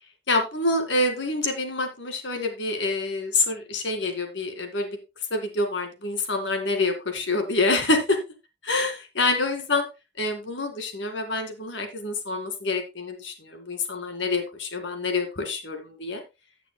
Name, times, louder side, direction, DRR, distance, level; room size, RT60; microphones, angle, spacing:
voice 1, 0.3-5.0 5.3-8.2 8.6-9.9 10.2-16.2, left 2 dB, 80° left, 5 dB, 2.1 m, -26 dB
16.0 x 6.8 x 2.2 m, 0.25 s
head